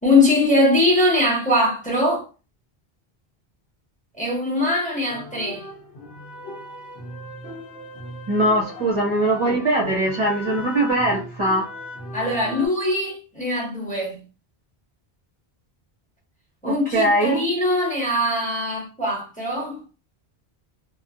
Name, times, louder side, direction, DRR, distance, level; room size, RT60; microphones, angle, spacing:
voice 1, 0.0-2.2 4.2-5.7 12.1-14.2 16.6-19.8, left 1 dB, 10° left, 0.9 m, -21 dB
sound 1, 5.1-12.7, left 1 dB, 75° left, 1.1 m, -37 dB
voice 2, 8.3-11.6 16.6-17.4, right 1 dB, 35° right, 0.6 m, -21 dB
2.5 x 2.3 x 2.4 m
omnidirectional pair, 1.1 m